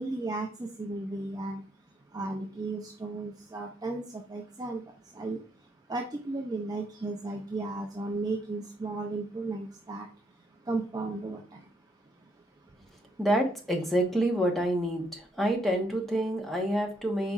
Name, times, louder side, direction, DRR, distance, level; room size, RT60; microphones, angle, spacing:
voice 1, 0.0-1.6 2.1-4.8 5.1-5.4 5.9-10.1 10.7-11.6, right 2 dB, 20° right, 1 dB, 0.5 m, -34 dB
voice 2, 13.2-17.3, right 1 dB, ahead, 1 dB, 0.9 m, -27 dB
4.8 x 4.1 x 2.4 m, 0.37 s
head